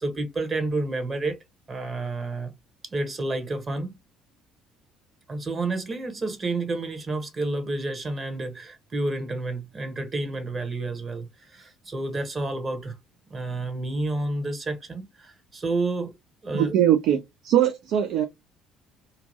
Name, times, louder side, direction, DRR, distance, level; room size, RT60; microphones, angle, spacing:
voice 1, 0.0-1.4 1.7-2.5 2.9-4.0 5.3-12.9 13.3-16.1 16.4-16.7, right 2 dB, 30° right, 1.0 m, -30 dB
voice 2, 16.5-17.2 17.4-18.3, right 11 dB, 55° right, 0.3 m, -21 dB
2.8 x 2.6 x 2.6 m
figure-of-eight pair, 55°, 0 cm